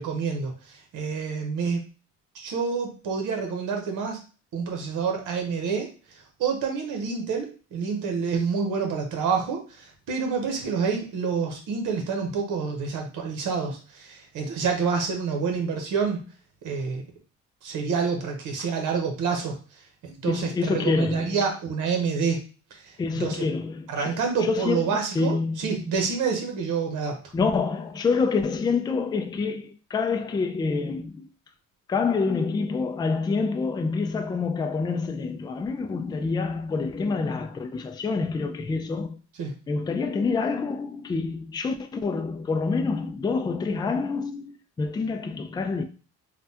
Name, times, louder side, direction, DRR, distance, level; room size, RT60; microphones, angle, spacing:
voice 1, 0.0-1.8 2.3-4.2 4.5-5.9 6.4-16.2 16.6-17.0 17.6-19.6 20.0-22.4 22.7-23.4 23.9-27.2 39.4-39.5, right 5 dB, 80° right, 0.9 m, -28 dB
voice 2, 20.2-21.4 23.0-25.8 27.3-31.3 31.9-39.2 39.7-45.8, left 4 dB, 15° left, 0.3 m, -27 dB
3.3 x 2.3 x 2.7 m
cardioid pair, 90°, 30 cm